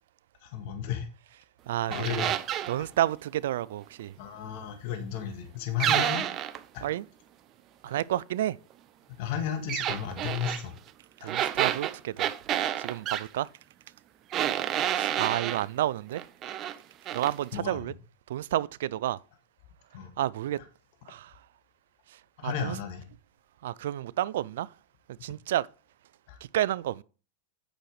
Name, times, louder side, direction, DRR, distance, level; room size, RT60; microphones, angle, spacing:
voice 1, 0.4-1.1 1.9-2.3 2.8-2.9 4.2-6.3 6.7-6.9 9.1-10.7 11.2-11.3 12.8-12.9 17.5-17.9 19.9-20.1 20.6-20.7 22.4-23.0 26.3-26.4, left 8 dB, 60° left, 1.9 m, -34 dB
voice 2, 1.7-2.2 2.7-4.1 6.8-7.0 7.8-8.6 11.2-12.3 12.8-13.5 14.9-16.2 17.1-17.9 18.3-19.2 20.2-20.6 21.1-21.3 22.4-22.8 23.6-24.7 25.2-25.7 26.5-27.0, right 13 dB, 75° right, 0.4 m, -30 dB
sound 1, 1.9-2.8 5.8-6.6 9.7-10.6 11.3-13.3 14.3-15.7 16.1-16.8 17.1-17.3, right 11 dB, 35° right, 0.8 m, -29 dB
8.9 x 6.6 x 4.8 m
hypercardioid pair, 115°, 0 cm